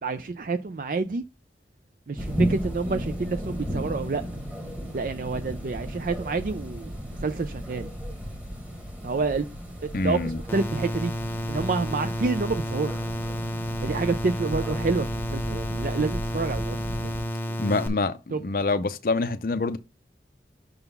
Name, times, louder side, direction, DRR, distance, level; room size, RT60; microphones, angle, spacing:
voice 1, 0.0-1.2 2.1-4.2 4.9-7.9 9.0-9.5 9.8-11.1 11.5-12.9 13.8-16.8 17.5-17.6 18.3-18.4, right 4 dB, 50° right, 0.4 m, -28 dB
sound 1, 2.2-17.2, equal, 10° right, 1.2 m, -34 dB
voice 2, 9.9-10.4 17.6-19.8, left 3 dB, 50° left, 0.5 m, -26 dB
sound 2, 10.5-17.9, equal, 10° left, 0.7 m, -31 dB
5.8 x 3.9 x 5.3 m
head